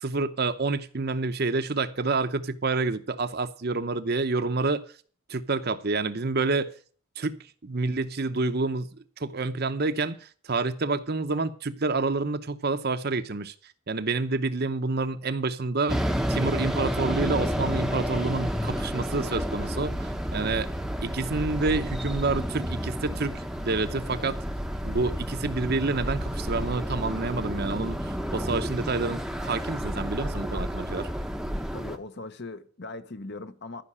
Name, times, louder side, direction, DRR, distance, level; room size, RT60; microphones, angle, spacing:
voice 1, 0.0-4.9 5.3-6.7 7.2-13.5 13.9-16.0 16.3-20.7 21.0-24.4 24.8-31.1, right 3 dB, 45° right, 0.8 m, -28 dB
sound 1, 15.9-32.0, equal, ahead, 0.8 m, -30 dB
voice 2, 31.7-33.8, left 2 dB, 50° left, 0.9 m, -39 dB
14.0 x 5.9 x 8.6 m
head